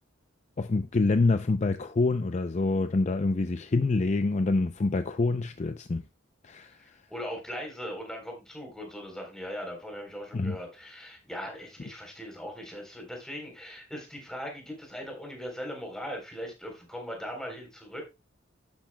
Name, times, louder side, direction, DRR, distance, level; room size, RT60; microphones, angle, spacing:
voice 1, 0.6-6.0 6.4-6.7 10.3-10.6, left 3 dB, 35° left, 0.5 m, -26 dB
voice 2, 7.1-18.0, equal, 5° left, 3.7 m, -39 dB
12.0 x 10.5 x 2.2 m
head